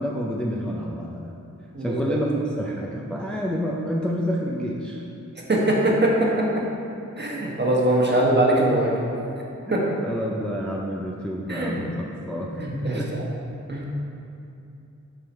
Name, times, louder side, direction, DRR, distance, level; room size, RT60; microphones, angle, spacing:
voice 1, 0.0-1.4 1.8-5.0 8.1-8.2 9.7-9.8 10.0-13.1, equal, 5° left, -2 dB, 0.5 m, -29 dB
voice 2, 5.5-6.6 7.2-9.0 9.7-9.9 11.5-11.8 12.6-13.0 13.7-13.9, right 1 dB, 35° right, -3 dB, 1.2 m, -22 dB
7.1 x 3.7 x 4.4 m, 2.7 s
wide cardioid pair, 65°, 32 cm